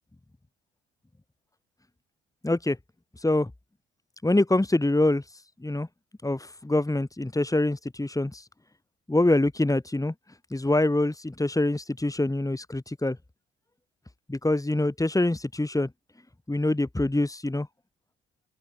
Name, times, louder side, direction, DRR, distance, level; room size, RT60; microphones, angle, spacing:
voice 1, 2.4-2.8 3.2-3.5 4.2-5.2 5.6-5.9 6.2-8.4 9.1-10.1 10.5-13.2 14.3-15.9 16.5-17.7, left 2 dB, 10° left, 4.6 m, -25 dB
open air
cardioid pair, 90°, 30 cm